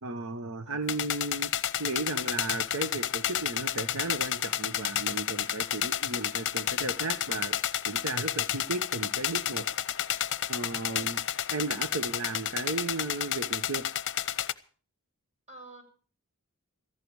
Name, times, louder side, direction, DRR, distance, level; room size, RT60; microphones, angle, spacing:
voice 1, 0.0-1.5 1.8-7.6 7.9-9.7 10.5-11.2 11.5-13.8, right 2 dB, 80° right, 8 dB, 1.1 m, -35 dB
voice 2, 0.7-1.0 10.9-11.2 15.5-15.8, right 2 dB, 30° right, 3 dB, 6.6 m, -49 dB
sound 1, 0.9-14.5, left 11 dB, 55° left, 0.7 m, -31 dB
17.0 x 14.5 x 4.7 m, 0.42 s
head